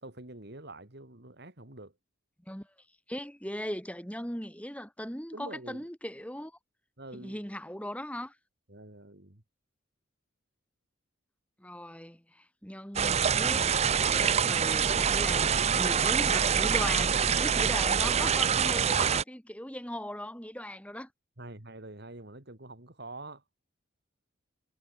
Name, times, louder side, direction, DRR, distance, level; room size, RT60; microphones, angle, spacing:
voice 1, 0.0-1.9 5.3-5.9 7.0-7.4 8.7-9.4 21.4-23.4, right 2 dB, 50° right, 2.5 m, -46 dB
voice 2, 3.1-6.5 7.1-8.3 11.6-21.1, equal, 5° left, 5.8 m, -39 dB
sound 1, 13.0-19.2, right 7 dB, 30° right, 0.5 m, -25 dB
head